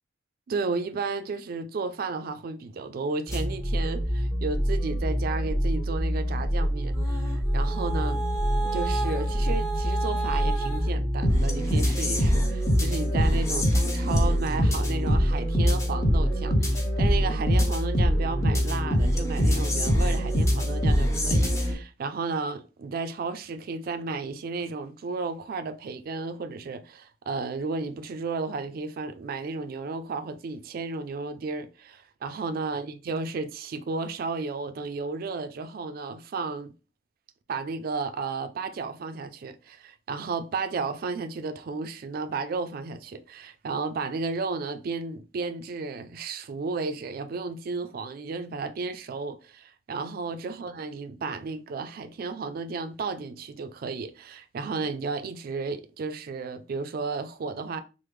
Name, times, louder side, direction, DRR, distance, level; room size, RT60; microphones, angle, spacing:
voice 1, 0.5-8.2 8.6-36.7 37.5-57.8, right 4 dB, 50° right, 0.3 m, -33 dB
sound 1, 3.3-21.7, equal, 15° left, 0.5 m, -24 dB
3.3 x 2.0 x 3.1 m
head